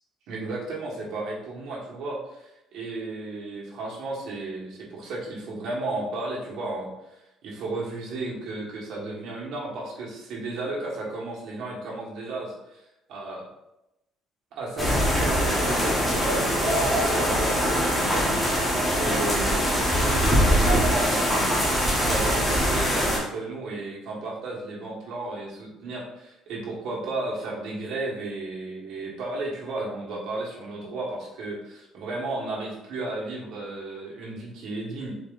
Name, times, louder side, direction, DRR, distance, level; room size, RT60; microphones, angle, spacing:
voice 1, 0.3-12.8 13.1-13.4 14.5-21.5 22.0-35.1, right 2 dB, 65° right, -4 dB, 1.3 m, -34 dB
sound 1, 14.8-23.2, equal, 10° left, 0.9 m, -23 dB
4.1 x 3.6 x 2.4 m, 0.89 s
cardioid pair, 150°, 0 cm